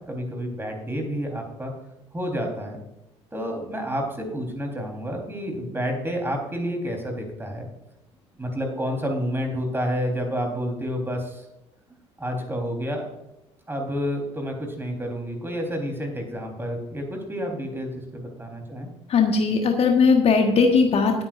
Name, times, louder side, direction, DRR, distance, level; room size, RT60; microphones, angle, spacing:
voice 1, 0.1-1.7 2.1-2.8 3.3-7.7 8.4-11.4 12.2-13.1 13.7-18.9, equal, 15° right, 2 dB, 4.1 m, -29 dB
voice 2, 19.1-21.2, left 5 dB, 45° left, 3 dB, 1.6 m, -19 dB
19.0 x 9.2 x 2.6 m, 0.90 s
figure-of-eight pair, 50°, 15 cm